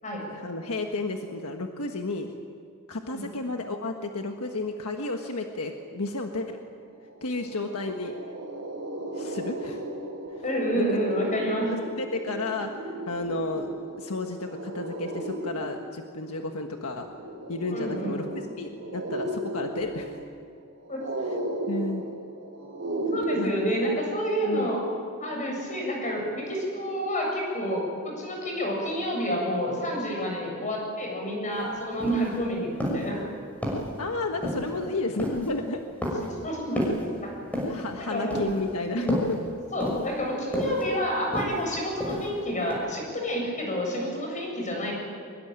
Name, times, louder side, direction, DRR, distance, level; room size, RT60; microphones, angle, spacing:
voice 1, 0.3-2.3 2.9-6.6 7.2-8.1 9.1-9.8 10.7-10.8 12.0-13.7 14.0-17.1 17.5-18.2 18.6-20.2 21.7-22.0 23.4-23.5 24.4-24.7 34.0-35.8 36.7-36.8 37.7-39.4, left 2 dB, 70° left, 3 dB, 1.5 m, -32 dB
sound 1, 6.7-6.8 7.1-23.2, right 1 dB, 55° right, 4.6 m, -36 dB
voice 2, 10.4-11.7 17.7-18.1 20.9-21.0 23.1-24.8 25.2-33.2 36.2-36.8 37.2-37.3 38.0-38.6 38.9-39.1 39.7-44.9, equal, 35° left, 0 dB, 7.9 m, -29 dB
sound 2, 31.5-31.6 32.0-32.4 32.8-33.1 33.6-34.0 34.4-34.8 35.2-35.5 36.0-36.4 36.8-37.1 37.5-37.9 38.3-38.7 39.1-39.4 39.8-40.2 40.5-40.8 41.3-41.7 42.0-42.4 42.7-42.8, equal, 5° left, 6.2 m, -30 dB
24.0 x 22.0 x 9.1 m, 2.4 s
head